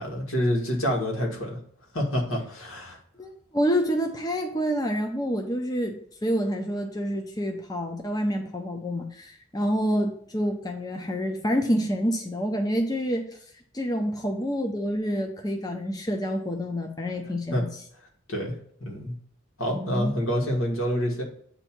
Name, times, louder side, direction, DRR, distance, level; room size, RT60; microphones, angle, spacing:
voice 1, 0.0-1.6 1.9-3.0 17.5-17.6 18.3-18.5 18.8-19.1 19.6-21.2, equal, 90° left, -1 dB, 1.9 m, -27 dB
voice 2, 3.2-13.2 13.7-17.7 19.7-20.1, equal, 20° left, 3 dB, 0.6 m, -28 dB
8.0 x 2.7 x 5.9 m, 0.63 s
head